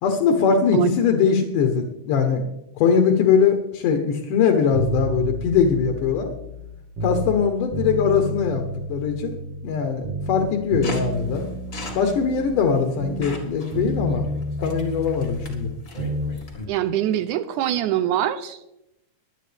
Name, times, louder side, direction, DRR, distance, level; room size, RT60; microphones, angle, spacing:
voice 1, 0.0-2.4 2.8-6.3 7.0-8.6 8.9-9.4 9.6-11.5 12.0-14.2 14.6-15.7, left 6 dB, 75° left, 4 dB, 2.7 m, -21 dB
sound 1, 4.7-7.4 7.7-9.8 10.0-13.5 13.7-16.3 16.6-16.7, right 1 dB, 55° right, 2.6 m, -30 dB
sound 2, 10.8-16.7, left 2 dB, 35° left, 1.6 m, -39 dB
voice 2, 16.7-18.6, right 11 dB, 80° right, 12 dB, 1.9 m, -23 dB
22.0 x 8.9 x 3.4 m, 0.87 s
omnidirectional pair, 3.8 m